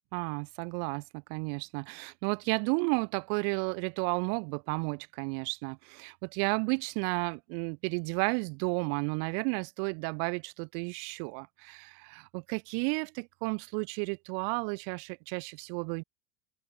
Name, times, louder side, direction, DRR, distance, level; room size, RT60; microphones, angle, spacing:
voice 1, 0.1-16.0, right 40 dB or more, 55° right, 7.1 m, -32 dB
open air
hypercardioid pair, 95°, 40 cm